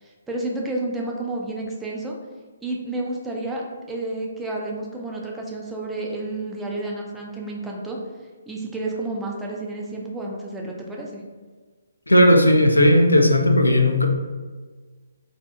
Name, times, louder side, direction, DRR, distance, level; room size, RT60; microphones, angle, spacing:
voice 1, 0.0-2.1 2.6-8.0 8.5-11.2, right 2 dB, 5° right, -2 dB, 0.3 m, -30 dB
voice 2, 12.1-14.1, left 1 dB, 75° left, 2 dB, 0.4 m, -15 dB
2.6 x 2.5 x 2.2 m, 1.4 s
figure-of-eight pair, 135°, 0 cm